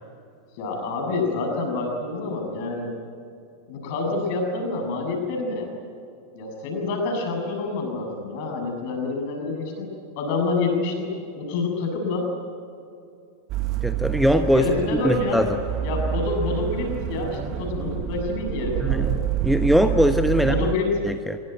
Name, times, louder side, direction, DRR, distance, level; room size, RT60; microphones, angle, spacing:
voice 1, 0.5-3.0 3.7-5.7 6.3-12.3 14.5-15.5 15.8-19.2 20.3-20.9, left 3 dB, 45° left, 2 dB, 7.5 m, -27 dB
sound 1, 13.5-20.7, right 11 dB, 35° right, 1.2 m, -28 dB
voice 2, 13.8-15.6 18.8-20.5 21.0-21.4, equal, ahead, 7 dB, 1.1 m, -21 dB
25.0 x 23.0 x 9.4 m, 2.6 s
figure-of-eight pair, 90°, 0 cm